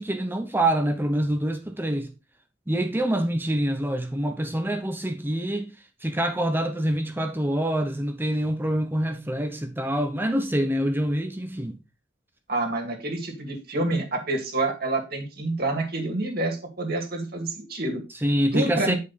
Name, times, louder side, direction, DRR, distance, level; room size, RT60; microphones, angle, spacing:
voice 1, 0.0-2.1 2.7-5.7 6.0-11.8 18.2-18.9, right 1 dB, 10° right, 0.9 m, -26 dB
voice 2, 12.5-18.0 18.5-19.0, right 2 dB, 55° right, 2.3 m, -28 dB
9.1 x 5.2 x 4.2 m
head